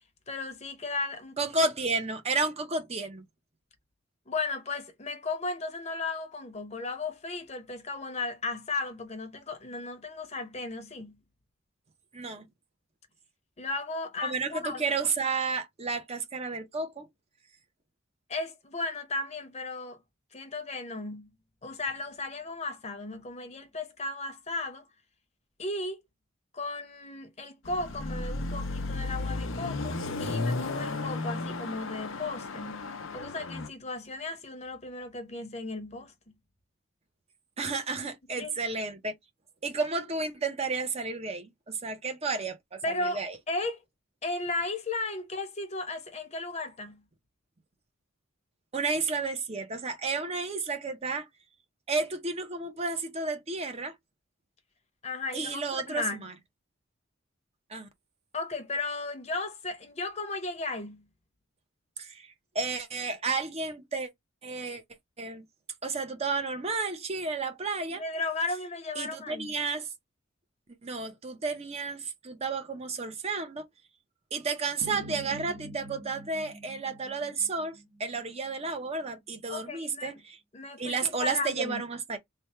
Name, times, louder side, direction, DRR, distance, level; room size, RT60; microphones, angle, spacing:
voice 1, 0.3-1.5 4.3-11.2 13.6-14.8 18.3-20.0 20.3-21.3 21.6-24.9 25.6-26.0 26.5-32.9 33.1-36.1 38.4-38.5 42.8-43.8 44.2-47.0 55.0-56.3 58.3-61.0 67.9-69.5 79.5-80.1 80.5-81.8, left 3 dB, 35° left, 0.9 m, -35 dB
voice 2, 1.4-3.2 12.1-12.5 14.2-17.1 37.6-39.1 39.6-43.4 48.7-51.3 51.9-53.9 55.3-56.3 57.7-57.9 62.0-64.1 64.4-64.8 65.2-65.5 65.8-68.0 69.0-69.9 70.8-73.7 74.3-80.4 80.8-82.2, right 4 dB, 30° right, 0.7 m, -32 dB
Car passing by / Accelerating revving vroom, 27.7-33.7, left 3 dB, 75° left, 0.7 m, -34 dB
sound 1, 74.8-78.0, equal, 75° right, 1.0 m, -45 dB
3.4 x 2.2 x 4.2 m
head